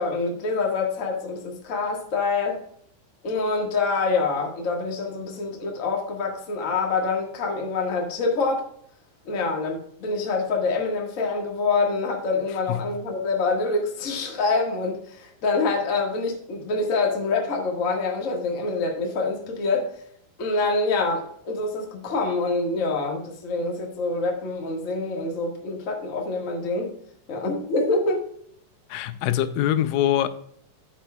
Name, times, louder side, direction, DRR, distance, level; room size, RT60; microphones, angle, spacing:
voice 1, 0.0-2.6 3.2-8.6 9.2-19.9 20.4-26.9 27.3-28.2, left 3 dB, 45° left, 1.1 m, -26 dB
voice 2, 28.9-30.3, left 12 dB, 85° left, 2.3 m, -23 dB
12.5 x 5.9 x 2.3 m
omnidirectional pair, 4.0 m